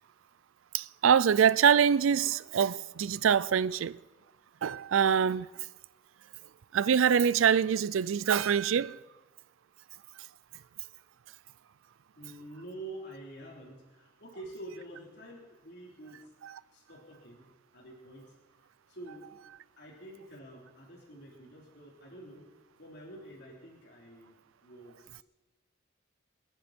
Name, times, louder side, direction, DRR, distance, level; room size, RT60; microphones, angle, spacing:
voice 1, 0.7-4.0 4.6-5.5 6.7-9.0, right 7 dB, 85° right, 0.4 m, -24 dB
voice 2, 12.2-16.3 16.7-17.5 17.7-18.3 18.9-19.3 19.8-22.4 22.8-25.2, right 1 dB, 55° left, 3.7 m, -47 dB
28.0 x 10.0 x 4.4 m
head